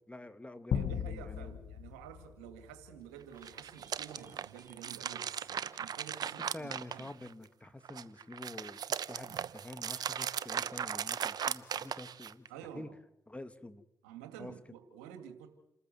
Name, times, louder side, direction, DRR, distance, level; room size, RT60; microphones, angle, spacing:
voice 1, 0.1-1.5 6.4-8.8 9.1-12.5 12.7-12.9 13.3-13.8 14.4-14.5, left 1 dB, 15° left, 10 dB, 2.2 m, -47 dB
sound 1, 0.7-3.2, left 8 dB, 65° left, 1.0 m, -37 dB
voice 2, 0.7-7.1 12.5-13.0 14.0-15.5, right 9 dB, 90° right, 7 dB, 2.3 m, -50 dB
sound 2, 3.3-6.8 7.1-7.2 7.5-7.6, right 3 dB, 30° right, 6.1 m, -65 dB
sound 3, 3.3-7.5 7.8-12.5, right 8 dB, 60° right, 1.0 m, -38 dB
28.5 x 14.0 x 7.8 m, 0.84 s
hypercardioid pair, 40°, 8 cm